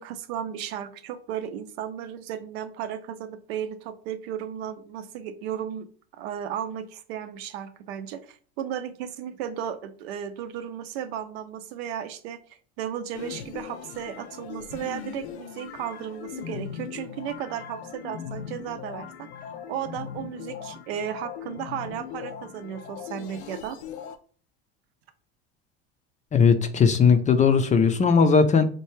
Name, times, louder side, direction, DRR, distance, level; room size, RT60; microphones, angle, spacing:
voice 1, 0.0-5.9 6.2-12.4 12.8-19.3 19.7-23.8, right 9 dB, 70° right, 9 dB, 0.7 m, -34 dB
sound 1, 13.1-24.2, left 8 dB, 85° left, 0.6 m, -39 dB
voice 2, 26.3-28.7, left 5 dB, 25° left, 8 dB, 0.5 m, -18 dB
4.4 x 2.2 x 3.1 m, 0.43 s
hypercardioid pair, 90°, 32 cm